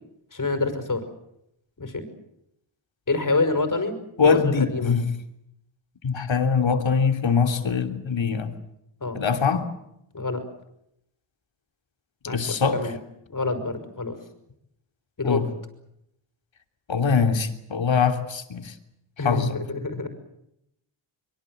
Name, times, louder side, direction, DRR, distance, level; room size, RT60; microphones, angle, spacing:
voice 1, 0.3-1.0 1.8-2.0 3.1-4.0 4.2-5.0 9.0-9.2 10.1-10.4 12.2-13.0 13.3-14.2 15.2-15.4 19.2-20.1, left 3 dB, 40° left, 8 dB, 5.8 m, -27 dB
voice 2, 4.2-5.1 6.0-8.6 9.1-9.7 12.2-12.8 15.2-15.5 16.9-18.7 19.2-19.6, left 5 dB, 65° left, 6 dB, 3.2 m, -23 dB
25.0 x 23.5 x 8.0 m, 0.79 s
wide cardioid pair, 85°, 49 cm